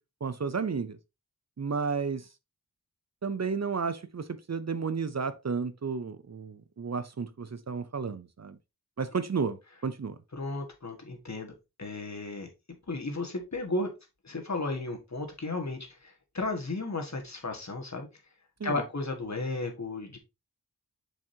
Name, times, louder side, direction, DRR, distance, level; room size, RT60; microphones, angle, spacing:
voice 1, 0.2-1.0 1.6-2.3 3.2-8.6 9.0-9.6 9.8-10.2 18.6-18.8, right 5 dB, 45° right, 0.6 m, -32 dB
voice 2, 10.3-12.5 12.9-13.9 14.2-18.1 18.6-20.2, left 2 dB, 45° left, 1.8 m, -34 dB
7.2 x 5.2 x 2.8 m
wide cardioid pair, 60°, 37 cm